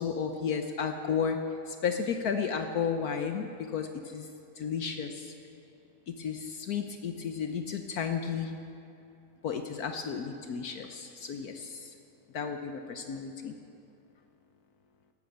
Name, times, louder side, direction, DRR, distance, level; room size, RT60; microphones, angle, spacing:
voice 1, 0.0-1.4 1.7-4.3 4.6-5.3 6.1-8.6 9.4-11.9 12.3-13.5, left 6 dB, 65° left, 6 dB, 1.2 m, -33 dB
13.5 x 12.0 x 8.6 m, 2.7 s
omnidirectional pair, 1.8 m